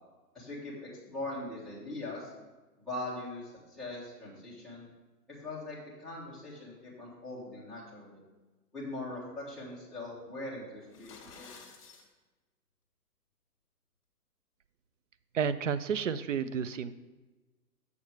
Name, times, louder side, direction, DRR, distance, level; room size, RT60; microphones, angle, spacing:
voice 1, 0.3-2.3 2.8-4.9 5.3-8.2 8.7-11.5, left 2 dB, ahead, -11 dB, 1.4 m, -41 dB
sound 1, 10.8-12.1, left 5 dB, 50° left, 1.6 m, -52 dB
voice 2, 15.3-16.9, right 7 dB, 55° right, 14 dB, 0.5 m, -31 dB
7.0 x 6.6 x 4.6 m, 1.2 s
hypercardioid pair, 160°, 47 cm